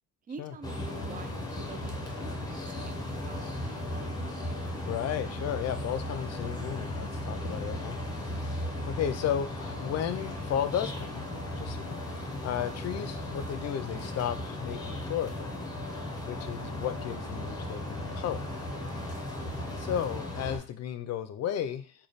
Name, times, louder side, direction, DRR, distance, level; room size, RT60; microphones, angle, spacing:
voice 1, 0.3-4.1 19.0-19.3, right 5 dB, 30° right, 9 dB, 0.4 m, -48 dB
sound 1, 0.6-20.6, left 1 dB, 15° left, 0.9 m, -36 dB
voice 2, 4.9-11.2 11.6-15.5 16.3-18.5 19.8-21.9, left 9 dB, 55° left, 10 dB, 0.5 m, -34 dB
3.1 x 2.2 x 4.0 m, 0.41 s
cardioid pair, 90°, 30 cm